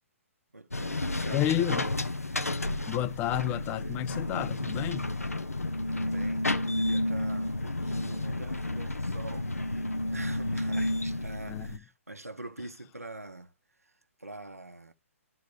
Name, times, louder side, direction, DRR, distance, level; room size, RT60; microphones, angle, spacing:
voice 1, 0.5-1.5 5.9-13.5 13.8-13.9 14.2-14.9, right 2 dB, 85° right, 1.2 m, -45 dB
sound 1, 0.7-11.8, left 1 dB, 85° left, 0.8 m, -31 dB
voice 2, 1.3-2.0 2.9-5.1 11.5-11.8, left 14 dB, 20° left, 0.4 m, -31 dB
10.5 x 4.0 x 6.3 m
figure-of-eight pair, 125°, 8 cm